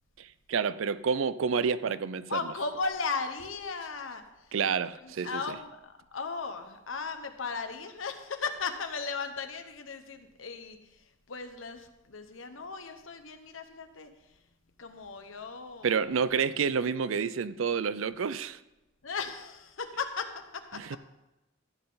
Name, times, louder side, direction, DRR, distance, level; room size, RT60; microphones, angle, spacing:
voice 1, 0.2-2.4 4.5-5.6 15.8-18.6 20.7-21.0, right 6 dB, 90° right, 16 dB, 0.5 m, -29 dB
voice 2, 2.3-4.2 5.0-10.8 11.3-14.1 14.8-16.0 19.0-20.8, left 4 dB, 90° left, 7 dB, 1.1 m, -36 dB
14.5 x 7.7 x 4.0 m, 1.0 s
head